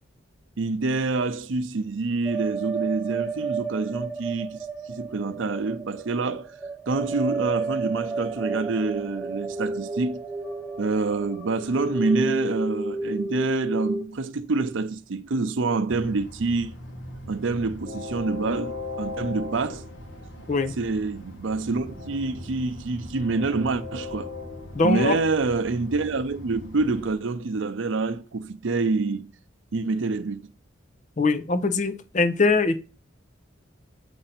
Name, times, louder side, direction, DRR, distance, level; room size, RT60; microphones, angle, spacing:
voice 1, 0.6-6.5 6.9-10.2 10.8-16.7 17.3-19.8 20.1-20.2 20.8-24.3 24.8-29.3 29.7-30.5, right 3 dB, 80° right, 0.6 m, -27 dB
sound 1, 2.3-14.0, right 3 dB, 5° left, 1.2 m, -31 dB
Train, 15.9-27.1, left 2 dB, 70° left, 1.1 m, -39 dB
voice 2, 24.7-25.2 31.2-32.8, left 3 dB, 40° left, 0.5 m, -22 dB
7.7 x 2.6 x 5.7 m
head